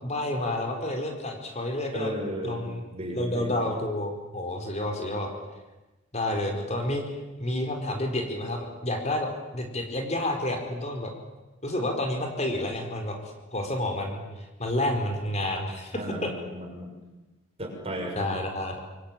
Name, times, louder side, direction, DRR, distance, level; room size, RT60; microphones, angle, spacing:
voice 1, 0.0-2.1 2.4-2.8 3.1-5.3 6.1-11.1 11.6-13.2 13.5-16.3 18.2-18.8, left 1 dB, 35° left, 3 dB, 4.7 m, -30 dB
voice 2, 1.9-2.7 2.9-3.5 15.9-16.9 17.6-18.3, equal, 30° right, 2 dB, 6.6 m, -34 dB
28.0 x 23.5 x 9.1 m, 1.1 s
head